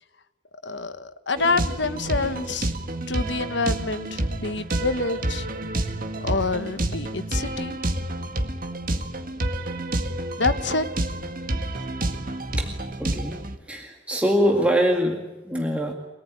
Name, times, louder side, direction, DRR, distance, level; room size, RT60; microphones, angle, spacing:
voice 1, 0.6-2.7 3.1-5.5 6.2-7.8 10.4-10.8, left 3 dB, 60° left, 11 dB, 1.3 m, -27 dB
sound 1, 1.4-13.6, right 1 dB, 45° right, 1.9 m, -29 dB
voice 2, 13.0-13.4 13.7-15.9, equal, 5° right, 1 dB, 2.0 m, -23 dB
24.5 x 19.0 x 9.5 m, 1.1 s
head